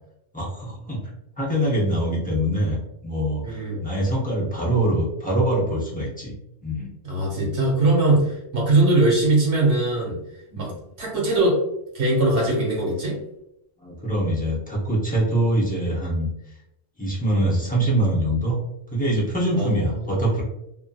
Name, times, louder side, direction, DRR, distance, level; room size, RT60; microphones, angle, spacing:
voice 1, 0.3-1.1 1.4-6.3 6.6-6.9 10.5-10.7 13.8-16.3 17.0-18.6 18.9-20.4, right 1 dB, 10° left, -5 dB, 0.4 m, -24 dB
voice 2, 3.4-3.8 7.0-10.2 10.6-10.7 11.0-11.6 11.9-13.2 19.6-20.3, right 2 dB, 70° right, -3 dB, 1.3 m, -21 dB
2.7 x 2.6 x 2.2 m, 0.82 s
omnidirectional pair, 1.3 m